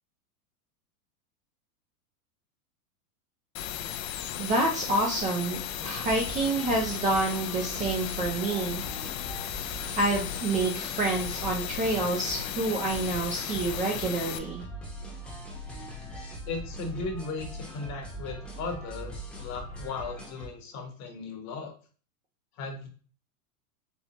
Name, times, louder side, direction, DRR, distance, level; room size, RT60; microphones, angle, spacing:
sound 1, 3.6-14.4, left 11 dB, 60° left, 0.5 m, -36 dB
voice 1, 4.4-8.8 10.0-14.6, right 2 dB, 15° right, -1 dB, 0.5 m, -28 dB
sound 2, 5.7-20.5, equal, ahead, 0.9 m, -41 dB
voice 2, 16.5-21.7 22.6-22.9, left 3 dB, 40° left, 3 dB, 1.1 m, -37 dB
4.3 x 3.2 x 2.8 m, 0.40 s
hypercardioid pair, 125°, 45 cm